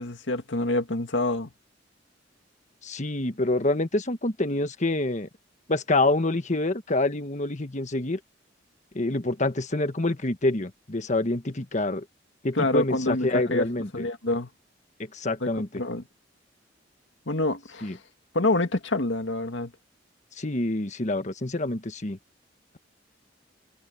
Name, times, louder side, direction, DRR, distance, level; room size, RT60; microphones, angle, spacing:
voice 1, 0.0-1.5 12.6-13.7 13.9-14.5 15.4-15.5 15.8-16.0 17.3-18.0 18.3-19.7, left 2 dB, 75° left, 2.1 m, -26 dB
voice 2, 2.8-5.3 5.7-8.2 8.9-12.0 12.4-14.0 15.0-15.8 17.8-18.0 20.4-22.2, left 2 dB, 40° left, 1.4 m, -27 dB
head